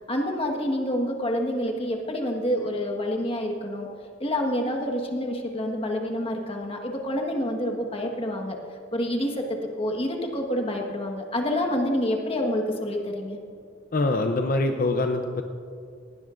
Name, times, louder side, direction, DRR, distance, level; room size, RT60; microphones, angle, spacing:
voice 1, 0.1-3.9 4.2-8.6 8.9-13.4, left 1 dB, 25° left, 2 dB, 1.4 m, -27 dB
voice 2, 13.9-15.4, left 2 dB, 45° left, 5 dB, 0.6 m, -24 dB
19.5 x 17.0 x 2.5 m, 2.3 s
head